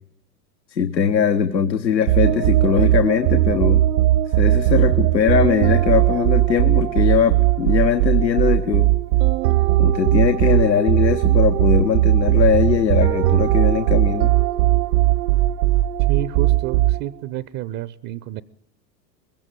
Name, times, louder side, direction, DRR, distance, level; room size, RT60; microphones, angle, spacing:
voice 1, 0.7-3.8 4.3-8.9 9.8-14.3, left 7 dB, 85° left, 7 dB, 1.3 m, -20 dB
sound 1, 2.1-17.2, right 15 dB, 55° right, 1.1 m, -18 dB
voice 2, 16.1-18.4, right 13 dB, 35° right, 18 dB, 0.8 m, -29 dB
21.5 x 16.5 x 9.3 m, 0.74 s
hypercardioid pair, 95°, 50 cm